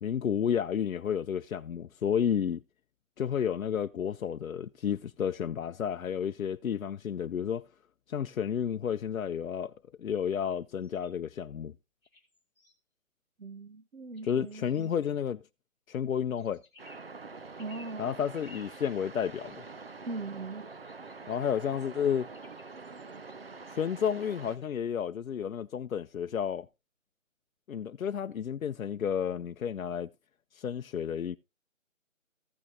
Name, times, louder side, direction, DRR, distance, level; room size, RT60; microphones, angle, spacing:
voice 1, 0.0-2.6 3.2-7.7 8.1-9.7 10.0-11.7 14.2-15.4 15.9-16.6 18.0-19.6 21.3-22.3 23.7-26.7 27.7-30.1 30.5-31.4, left 8 dB, 80° left, 0.6 m, -31 dB
sound 1, 10.8-11.1 12.0-12.8 14.1-15.1 16.4-17.1 17.6-17.9 18.3-18.7 19.3-19.9 20.7-21.4 22.3-23.4 24.3-24.9, left 3 dB, 5° right, 1.2 m, -58 dB
voice 2, 13.4-14.9 17.6-18.1 20.1-20.7, right 3 dB, 75° right, 1.2 m, -40 dB
sound 2, 16.8-24.6, right 4 dB, 45° right, 0.5 m, -46 dB
15.0 x 6.1 x 2.8 m
figure-of-eight pair, 170°, 41 cm